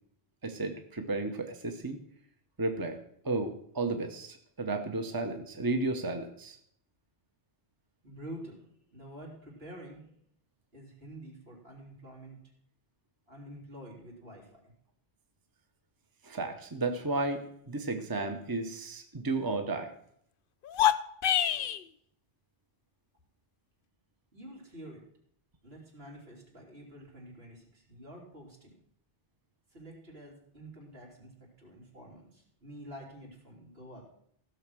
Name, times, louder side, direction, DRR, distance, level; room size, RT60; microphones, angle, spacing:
voice 1, 0.4-2.0 2.6-3.0 3.2-6.6 16.2-19.9, right 3 dB, 20° right, 5 dB, 1.0 m, -33 dB
voice 2, 8.0-10.1 10.7-12.4 13.3-14.7 24.3-25.0 25.6-28.7 29.7-34.0, right 1 dB, 75° right, -2 dB, 3.9 m, -48 dB
sound 1, 20.6-21.8, left 10 dB, 65° left, 0.7 m, -26 dB
16.0 x 6.5 x 6.2 m, 0.68 s
omnidirectional pair, 1.1 m